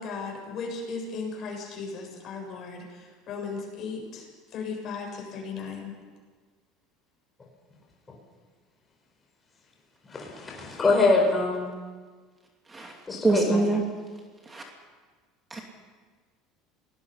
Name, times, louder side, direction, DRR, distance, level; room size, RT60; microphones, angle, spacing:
voice 1, 0.0-4.3 4.5-5.9, left 4 dB, 45° left, 1 dB, 7.5 m, -36 dB
voice 2, 10.1-11.7 13.1-13.6, left 3 dB, 20° left, 0 dB, 4.5 m, -24 dB
voice 3, 13.2-13.8 14.5-14.6 15.5-15.6, right 3 dB, 15° right, 1 dB, 2.5 m, -24 dB
28.0 x 19.0 x 5.6 m, 1.4 s
supercardioid pair, 125°, 0 cm